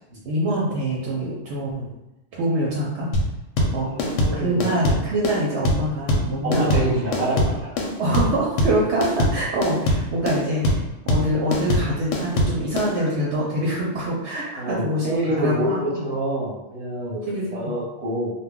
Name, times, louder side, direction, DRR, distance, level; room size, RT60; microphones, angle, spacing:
voice 1, 0.3-1.9 2.3-3.1 3.7-3.9 4.3-6.9 8.0-16.0 17.1-17.8, right 1 dB, 70° right, -4 dB, 0.8 m, -25 dB
sound 1, 3.1-12.9, left 1 dB, 85° left, 0.9 m, -22 dB
voice 2, 3.8-4.7 6.4-7.7 14.6-18.3, right 1 dB, 40° right, -4 dB, 0.8 m, -27 dB
2.2 x 2.1 x 3.6 m, 0.96 s
omnidirectional pair, 1.3 m